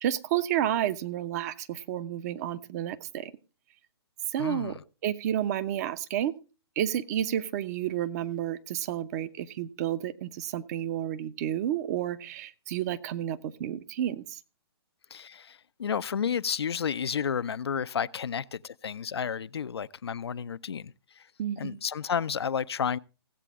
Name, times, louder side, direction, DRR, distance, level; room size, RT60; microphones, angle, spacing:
voice 1, 0.0-3.3 4.3-4.7 5.0-6.3 6.8-14.4 21.4-21.8, right 11 dB, 40° right, 0.9 m, -31 dB
voice 2, 4.4-4.8 15.1-21.2 21.6-23.0, left 7 dB, 70° left, 0.6 m, -31 dB
16.5 x 8.2 x 3.6 m
figure-of-eight pair, 135°, 14 cm